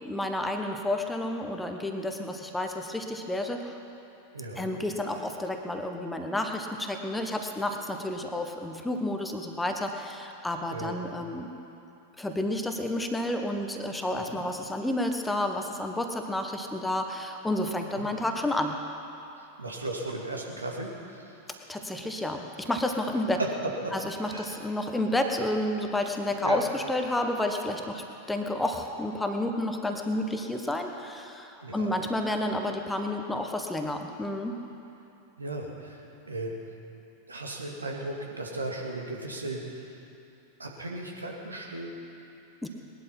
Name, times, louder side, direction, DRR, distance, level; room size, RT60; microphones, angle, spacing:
voice 1, 0.0-3.8 4.5-11.5 12.2-18.8 21.5-23.4 23.9-34.6 42.6-42.7, left 1 dB, 5° left, 4 dB, 1.2 m, -30 dB
voice 2, 4.3-4.7 10.7-10.9 14.1-14.4 18.0-18.1 19.6-20.9 21.2-21.3 23.4-23.5 23.8-23.9 24.3-24.6 26.4-26.6 31.6-31.9 35.4-36.0 36.3-36.5 37.3-39.9 40.6-42.0, right 2 dB, 80° right, 0 dB, 2.2 m, -36 dB
20.0 x 11.5 x 5.8 m, 2.9 s
figure-of-eight pair, 90°, 0 cm